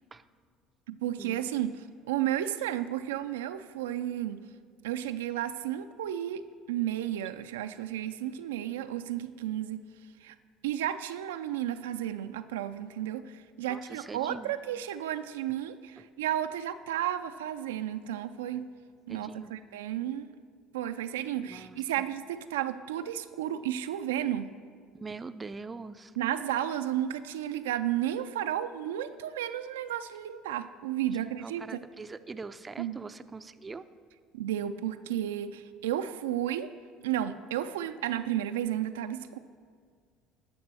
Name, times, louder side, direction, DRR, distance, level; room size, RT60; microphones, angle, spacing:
voice 1, 0.9-4.4 4.8-6.4 6.7-9.8 10.2-10.3 10.6-18.7 19.1-20.3 20.7-24.5 26.2-31.8 32.8-33.0 34.3-36.7 37.0-39.4, right 11 dB, 90° right, 9 dB, 0.3 m, -33 dB
voice 2, 13.7-14.5 16.0-16.1 19.1-19.5 21.4-22.1 24.9-26.2 31.4-33.8, right 4 dB, 25° right, 11 dB, 0.5 m, -43 dB
11.0 x 6.1 x 6.2 m, 2.1 s
hypercardioid pair, 75°, 0 cm